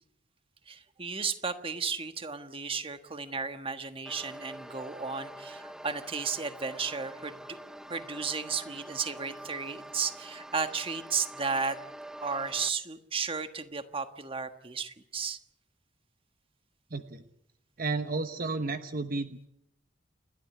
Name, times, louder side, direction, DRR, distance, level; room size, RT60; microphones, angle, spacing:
voice 1, 0.7-7.6 7.9-11.8 12.2-15.4, right 5 dB, 30° right, 9 dB, 1.4 m, -34 dB
sound 1, 4.1-12.7, right 1 dB, 5° right, 0.8 m, -45 dB
voice 2, 16.9-17.2 17.8-19.4, right 3 dB, 50° right, 9 dB, 1.0 m, -32 dB
29.5 x 12.5 x 9.7 m, 0.80 s
head